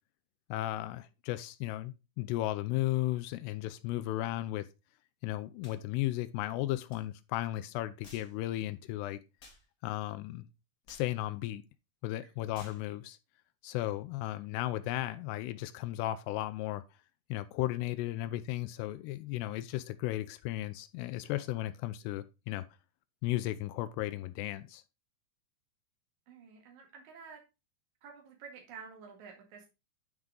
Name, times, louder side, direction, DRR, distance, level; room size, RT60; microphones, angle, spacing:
voice 1, 0.5-4.7 5.2-9.2 9.8-10.5 10.9-11.6 12.0-13.2 13.6-16.8 17.3-22.6 23.2-24.8, left 15 dB, 85° left, 2.6 m, -35 dB
sound 1, 5.6-5.8 6.9-7.0 8.0-8.3 9.4-9.6 10.9-11.1 12.5-12.8, left 2 dB, 60° left, 0.9 m, -54 dB
voice 2, 26.3-27.4 28.0-29.7, right 6 dB, 55° right, 2.9 m, -50 dB
9.5 x 4.6 x 3.7 m
omnidirectional pair, 4.8 m